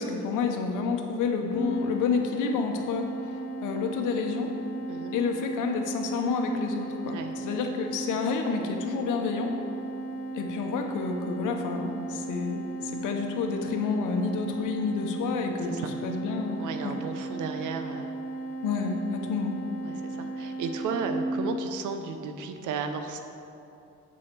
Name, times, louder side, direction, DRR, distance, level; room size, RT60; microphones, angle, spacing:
voice 1, 0.0-3.1 3.6-4.5 5.1-9.5 10.3-12.7 12.9-15.7 16.0-16.9 18.6-19.5, left 5 dB, 85° left, 4 dB, 0.9 m, -29 dB
sound 1, 1.5-21.1, right 2 dB, 55° left, 1.8 m, -36 dB
voice 2, 7.0-7.3 15.6-15.9 16.6-18.2 19.8-23.2, right 5 dB, 80° right, 7 dB, 0.7 m, -34 dB
7.4 x 4.3 x 6.7 m, 2.7 s
cardioid pair, 90°, 30 cm